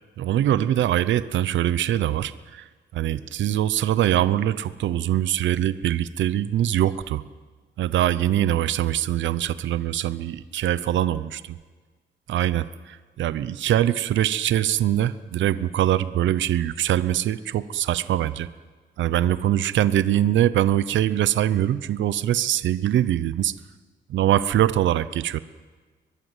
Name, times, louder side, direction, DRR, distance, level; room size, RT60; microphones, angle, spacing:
voice 1, 0.2-2.6 2.9-7.2 7.8-11.2 12.3-18.5 19.0-23.5 24.1-25.4, right 12 dB, 80° right, 16 dB, 0.8 m, -23 dB
22.5 x 21.5 x 8.2 m, 1.4 s
cardioid pair, 145°, 19 cm